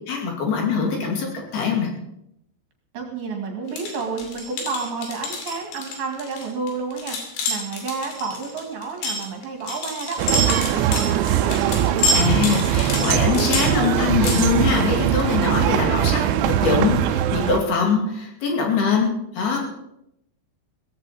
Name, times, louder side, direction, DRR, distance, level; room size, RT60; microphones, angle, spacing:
voice 1, 0.1-1.3 1.5-1.9 12.1-19.7, left 5 dB, 60° left, 1 dB, 4.3 m, -23 dB
voice 2, 2.9-11.7, right 4 dB, 60° right, 2 dB, 3.7 m, -31 dB
sound 1, 3.7-14.4, left 2 dB, 80° left, 5.1 m, -27 dB
sound 2, 10.2-17.6, right 11 dB, 85° right, 3.2 m, -21 dB
17.5 x 15.0 x 4.2 m, 0.79 s
omnidirectional pair, 5.4 m